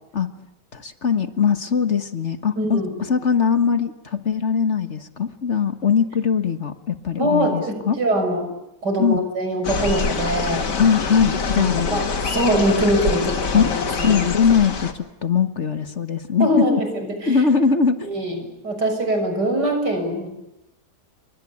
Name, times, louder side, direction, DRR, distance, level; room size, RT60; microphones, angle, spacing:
voice 1, 0.7-2.8 3.1-8.0 9.0-9.2 10.8-12.1 13.5-13.7 14.0-16.8 17.3-18.2, left 6 dB, 45° left, 10 dB, 1.6 m, -21 dB
voice 2, 2.6-2.9 7.2-8.5 8.8-10.6 11.5-14.2 16.4-17.4 18.1-20.3, right 1 dB, 80° right, 6 dB, 7.2 m, -23 dB
sound 1, 9.6-14.9, left 5 dB, 90° left, 2.7 m, -25 dB
29.0 x 24.0 x 8.5 m, 0.89 s
omnidirectional pair, 1.8 m